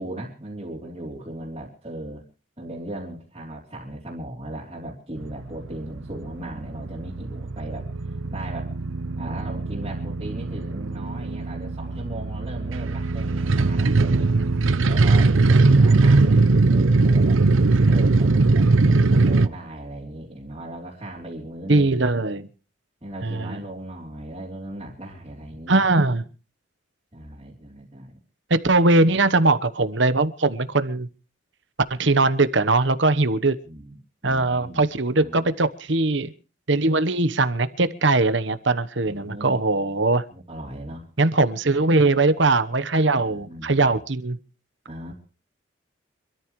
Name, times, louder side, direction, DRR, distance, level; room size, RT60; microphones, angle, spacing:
voice 1, 0.0-2.2 2.6-8.7 9.2-14.3 14.9-16.4 16.7-17.4 17.9-21.9 23.0-25.8 27.1-28.1 33.6-34.0 34.2-34.9 35.1-35.5 39.0-39.6 40.3-41.1 43.2-44.0 44.9-45.1, right 1 dB, 25° right, -5 dB, 3.4 m, -37 dB
sound 1, 5.2-19.5, right 3 dB, 80° right, 0.7 m, -20 dB
voice 2, 14.4-15.0 21.7-22.5 23.2-23.6 25.7-26.2 28.5-31.1 31.9-33.5 34.2-36.3 36.7-40.2 41.2-44.4, right 2 dB, 65° right, 13 dB, 1.1 m, -21 dB
26.0 x 13.5 x 3.2 m, 0.36 s
head